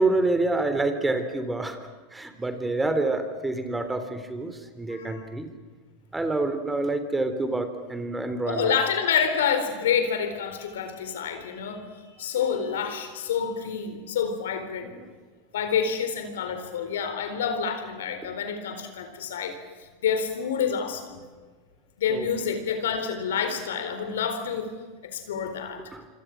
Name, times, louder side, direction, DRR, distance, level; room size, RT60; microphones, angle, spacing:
voice 1, 0.0-1.8 2.1-5.5 6.1-8.7 22.1-22.3 25.9-26.0, right 2 dB, 10° right, 8 dB, 3.5 m, -27 dB
voice 2, 4.9-5.3 8.4-14.9 15.5-19.5 20.0-21.2 22.0-24.7 25.0-25.8, left 7 dB, 80° left, 8 dB, 4.1 m, -28 dB
26.5 x 26.5 x 6.3 m, 1.4 s
hypercardioid pair, 95°, 0 cm